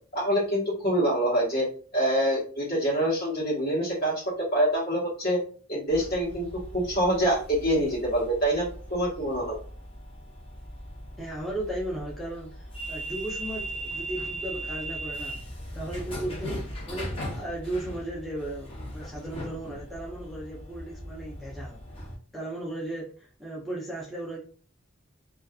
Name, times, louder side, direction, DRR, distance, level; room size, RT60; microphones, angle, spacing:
voice 1, 0.1-1.7 1.9-5.4 5.7-6.5 6.7-9.6, right 1 dB, 50° left, -5 dB, 1.2 m, -25 dB
sound 1, 5.9-22.2, right 1 dB, 25° left, 0.8 m, -39 dB
voice 2, 11.2-15.4 15.7-21.8 22.3-24.4, right 1 dB, ahead, -6 dB, 0.5 m, -36 dB
2.4 x 2.4 x 2.3 m, 0.41 s
head